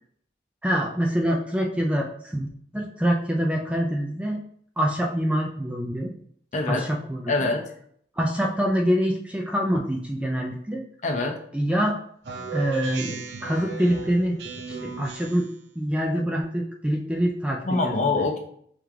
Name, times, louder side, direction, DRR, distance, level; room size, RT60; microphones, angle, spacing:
voice 1, 0.6-2.5 2.7-4.4 4.8-6.1 6.7-7.5 8.2-10.8 11.5-11.9 12.5-13.2 13.4-14.4 14.7-15.5 15.8-17.9, equal, 5° right, 0 dB, 0.3 m, -25 dB
voice 2, 6.5-6.8 7.3-7.6 11.0-11.4 17.6-18.4, left 3 dB, 40° left, 2 dB, 0.6 m, -24 dB
Speech synthesizer, 12.2-15.6, right 5 dB, 65° right, 0.6 m, -36 dB
3.6 x 3.2 x 3.3 m, 0.63 s
head